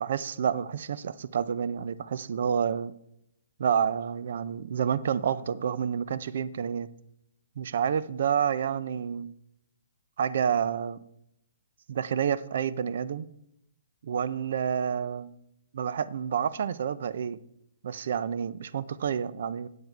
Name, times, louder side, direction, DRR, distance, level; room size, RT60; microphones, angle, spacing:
voice 1, 0.0-2.9 3.6-6.9 7.6-9.3 10.2-11.0 11.9-13.3 14.0-15.3 15.7-17.4 17.8-19.7, right 7 dB, 60° right, 17 dB, 0.5 m, -29 dB
9.3 x 8.1 x 4.5 m, 0.78 s
hypercardioid pair, 155°, 0 cm